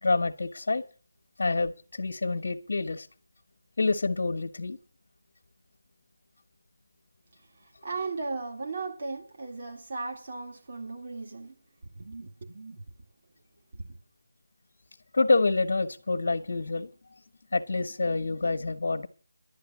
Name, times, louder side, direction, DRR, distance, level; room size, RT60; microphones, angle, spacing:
voice 1, 0.0-0.8 1.4-3.1 3.8-4.8 15.1-16.9 17.5-19.1, left 3 dB, 60° left, 1.3 m, -27 dB
voice 2, 7.6-11.6 12.0-12.8 13.7-14.0, right 3 dB, 45° right, 2.1 m, -37 dB
11.5 x 8.8 x 7.3 m
figure-of-eight pair, 165°, 0 cm